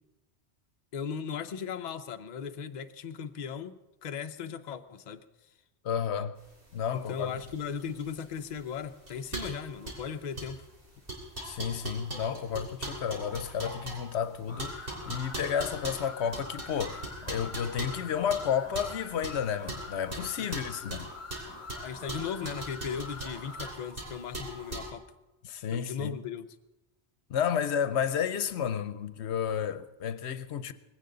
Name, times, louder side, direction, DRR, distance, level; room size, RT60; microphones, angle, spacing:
voice 1, 0.9-5.2 6.9-10.6 20.4-20.5 21.8-25.0 25.7-26.6, left 7 dB, 45° left, 0.7 m, -37 dB
voice 2, 5.8-6.4 6.7-7.3 11.4-21.1 25.4-26.2 27.3-30.7, left 8 dB, 85° left, 1.0 m, -31 dB
sound 1, 6.5-24.9, right 1 dB, 55° right, 3.3 m, -41 dB
sound 2, 14.5-23.7, left 4 dB, 30° left, 1.2 m, -45 dB
19.5 x 16.0 x 3.9 m
omnidirectional pair, 1.1 m